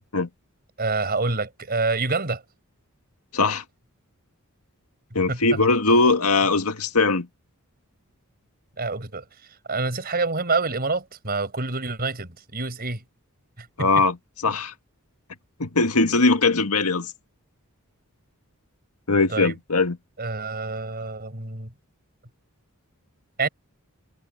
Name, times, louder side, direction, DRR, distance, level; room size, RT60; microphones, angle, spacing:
voice 1, 0.8-2.4 5.3-5.4 8.8-9.2 9.7-13.0 13.6-13.9 19.3-19.5 20.2-21.7 23.4-23.5, right 3 dB, 45° right, 5.1 m, -27 dB
voice 2, 3.3-3.6 5.1-7.3 13.8-14.2 14.4-14.7 15.6-17.1 19.1-20.0, left 3 dB, 85° left, 1.9 m, -20 dB
head